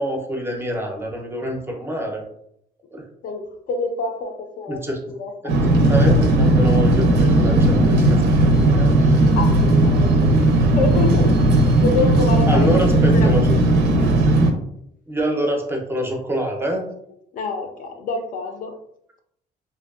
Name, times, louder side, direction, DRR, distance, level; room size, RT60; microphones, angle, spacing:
voice 1, 0.0-2.2 2.9-3.1 4.7-5.0 5.9-8.9 12.5-13.4 15.1-16.8, equal, 15° right, 1 dB, 0.5 m, -26 dB
voice 2, 3.2-5.7 5.9-6.1 9.3-13.3 14.3-14.4 17.3-18.8, left 3 dB, 55° left, 5 dB, 0.5 m, -28 dB
sound 1, 5.5-14.5, right 1 dB, 85° right, 0.5 m, -16 dB
2.6 x 2.2 x 2.3 m, 0.73 s
cardioid pair, 110°, 17 cm